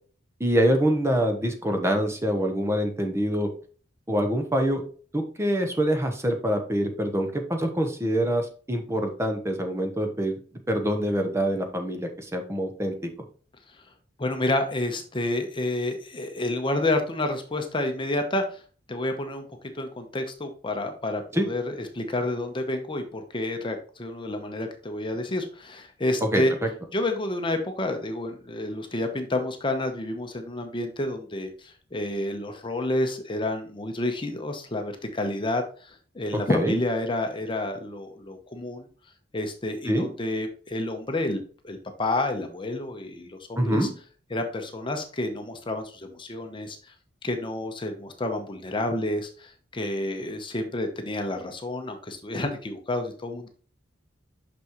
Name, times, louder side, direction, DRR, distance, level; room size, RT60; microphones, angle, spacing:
voice 1, 0.4-3.5 4.1-4.8 5.1-10.4 10.7-12.9 21.3-21.5 26.3-26.7 36.5-36.7 39.9-40.1 43.6-43.9, equal, 15° right, 5 dB, 0.9 m, -25 dB
voice 2, 14.2-18.6 18.9-19.4 19.7-26.5 26.9-38.9 39.3-43.9 44.3-46.8 47.2-53.5, left 1 dB, 25° left, 5 dB, 0.9 m, -29 dB
6.1 x 6.1 x 3.0 m, 0.41 s
head